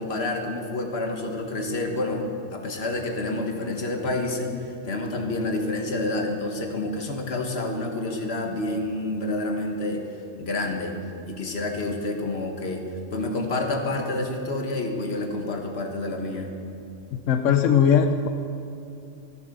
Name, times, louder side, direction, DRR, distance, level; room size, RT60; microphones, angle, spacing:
voice 1, 0.0-2.3 2.5-10.0 10.4-11.0 11.3-12.9 13.1-16.5, left 2 dB, 55° left, 2 dB, 1.7 m, -28 dB
voice 2, 17.3-18.3, left 7 dB, 85° left, 7 dB, 1.1 m, -19 dB
14.5 x 11.0 x 6.8 m, 2.6 s
omnidirectional pair, 1.3 m